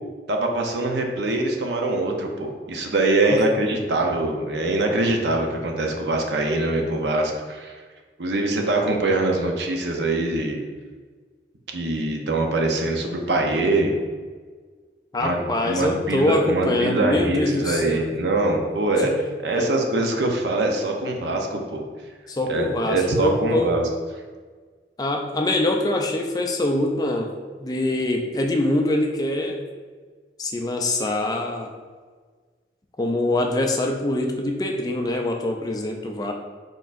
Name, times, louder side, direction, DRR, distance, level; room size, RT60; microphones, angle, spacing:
voice 1, 0.3-7.8 8.2-10.6 11.7-13.9 15.2-19.1 19.4-21.8 22.5-23.8, right 2 dB, 80° right, 2 dB, 0.6 m, -23 dB
voice 2, 15.1-18.1 19.0-19.1 19.5-19.7 22.3-23.7 25.0-27.3 27.6-29.6 30.4-31.7 33.0-36.3, left 1 dB, 20° left, 2 dB, 0.4 m, -24 dB
4.5 x 4.4 x 2.5 m, 1.5 s
head